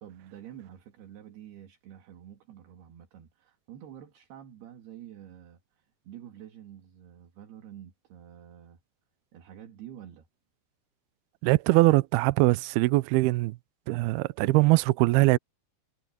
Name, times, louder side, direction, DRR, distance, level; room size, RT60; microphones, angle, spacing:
voice 1, 0.0-8.8 9.3-10.3, right 10 dB, 65° right, 4.0 m, -48 dB
voice 2, 11.4-13.6 13.9-15.4, right 21 dB, 85° right, 2.3 m, -22 dB
omnidirectional pair, 5.0 m